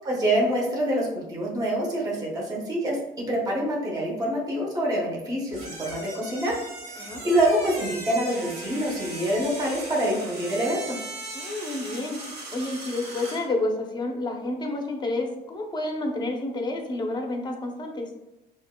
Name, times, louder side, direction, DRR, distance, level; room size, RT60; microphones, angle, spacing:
voice 1, 0.0-3.0 3.3-6.5 6.9-11.0, right 1 dB, 20° right, -4 dB, 1.1 m, -26 dB
sound 1, 5.5-13.5, right 2 dB, 80° right, 1.3 m, -38 dB
voice 2, 7.0-7.3 11.3-12.2 12.5-18.1, left 2 dB, 25° left, 3 dB, 0.7 m, -29 dB
6.1 x 2.4 x 2.2 m, 0.92 s
cardioid pair, 110°, 17 cm